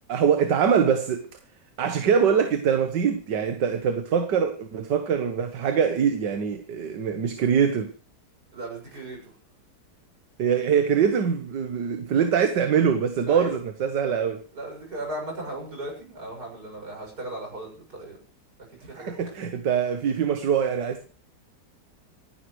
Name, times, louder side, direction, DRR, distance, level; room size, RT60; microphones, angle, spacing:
voice 1, 0.1-1.3 1.8-7.9 10.4-14.4 18.9-21.0, right 7 dB, 80° right, 1.9 m, -23 dB
voice 2, 8.5-9.3 13.3-13.6 14.5-18.2 18.8-19.1, right 1 dB, 60° right, 7.4 m, -36 dB
26.5 x 11.0 x 3.2 m
omnidirectional pair, 1.8 m